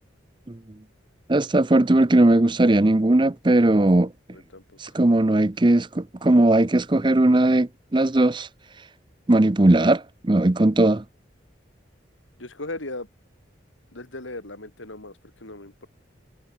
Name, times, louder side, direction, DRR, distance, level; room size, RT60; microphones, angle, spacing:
voice 1, 1.3-4.1 4.8-8.5 9.3-11.0, right 1 dB, 25° right, 0.6 m, -18 dB
voice 2, 4.3-4.9 12.4-13.1 13.9-15.9, left 2 dB, 80° left, 4.8 m, -38 dB
head